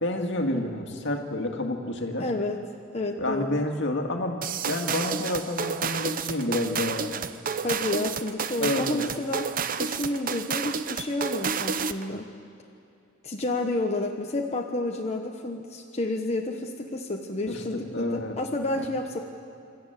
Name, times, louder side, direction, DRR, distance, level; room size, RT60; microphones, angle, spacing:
voice 1, 0.0-2.3 3.2-7.2 8.6-9.0 17.5-18.4 18.8-18.9, left 1 dB, 60° left, 3 dB, 2.1 m, -29 dB
voice 2, 2.2-2.6 2.9-3.6 7.6-9.5 9.8-12.3 13.2-19.2, left 2 dB, 30° left, 2 dB, 1.1 m, -30 dB
sound 1, 4.4-12.1, right 6 dB, 45° right, 0.7 m, -30 dB
26.5 x 13.5 x 9.1 m, 2.7 s
head